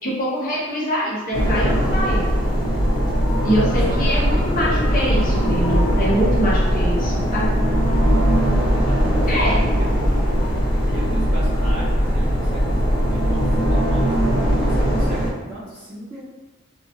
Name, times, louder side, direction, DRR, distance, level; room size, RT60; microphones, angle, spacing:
voice 1, 0.0-2.3 3.4-7.5 9.3-9.6, equal, 40° left, -5 dB, 0.7 m, -24 dB
sound 1, 1.3-15.3, equal, 75° left, 0.7 m, -19 dB
voice 2, 3.6-4.2 8.8-10.0 10.9-16.2, equal, 15° right, -15 dB, 0.9 m, -36 dB
2.8 x 2.2 x 2.7 m, 1.2 s
head